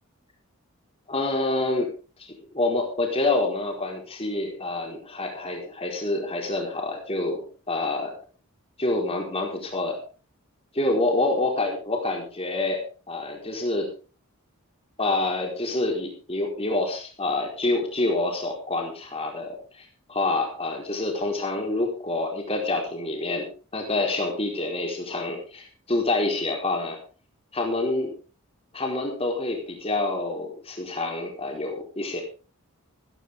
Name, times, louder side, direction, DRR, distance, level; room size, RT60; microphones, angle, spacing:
voice 1, 1.1-1.9 2.2-2.3 2.5-8.2 8.8-10.0 10.7-13.9 15.0-27.0 27.5-28.2 28.7-32.2, left 2 dB, 25° left, 0 dB, 4.5 m, -27 dB
15.0 x 14.5 x 3.7 m, 0.35 s
head